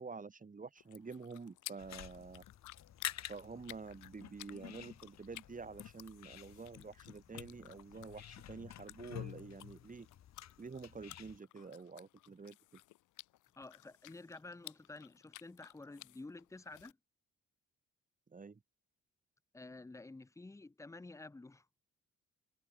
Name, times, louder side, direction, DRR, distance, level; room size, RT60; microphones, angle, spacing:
voice 1, 0.0-2.4 3.3-10.1 10.6-12.8 18.3-18.6, right 4 dB, 25° right, 2.3 m, -48 dB
sound 1, 0.8-16.9, left 17 dB, 80° left, 0.8 m, -56 dB
sound 2, 1.8-11.4, left 11 dB, 60° left, 1.7 m, -50 dB
voice 2, 13.6-17.0 19.5-21.7, left 2 dB, 10° left, 0.7 m, -51 dB
cardioid pair, 90°, 30 cm